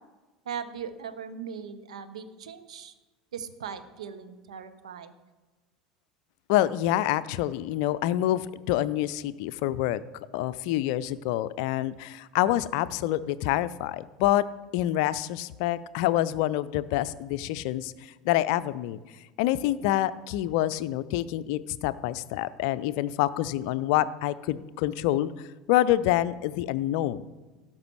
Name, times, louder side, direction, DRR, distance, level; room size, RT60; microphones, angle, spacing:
voice 1, 0.4-2.9 3.3-5.1, right 7 dB, 70° right, 11 dB, 0.9 m, -39 dB
voice 2, 6.5-10.0 10.3-14.4 14.7-17.9 18.3-19.0 19.4-25.3 25.7-27.3, left 14 dB, 55° left, 16 dB, 0.4 m, -27 dB
16.5 x 6.0 x 4.5 m, 1.2 s
figure-of-eight pair, 75°, 4 cm